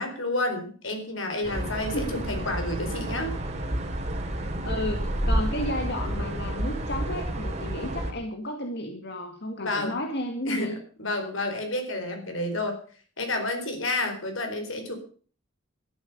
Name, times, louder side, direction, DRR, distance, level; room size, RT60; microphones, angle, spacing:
voice 1, 0.0-3.3 9.6-10.0 10.5-12.8 13.2-14.9, left 2 dB, 80° left, 5 dB, 4.4 m, -30 dB
sound 1, 1.4-8.1, right 1 dB, 35° right, 2.9 m, -30 dB
voice 2, 4.6-10.8, left 1 dB, 60° left, 4 dB, 1.9 m, -32 dB
12.5 x 12.0 x 6.7 m, 0.42 s
head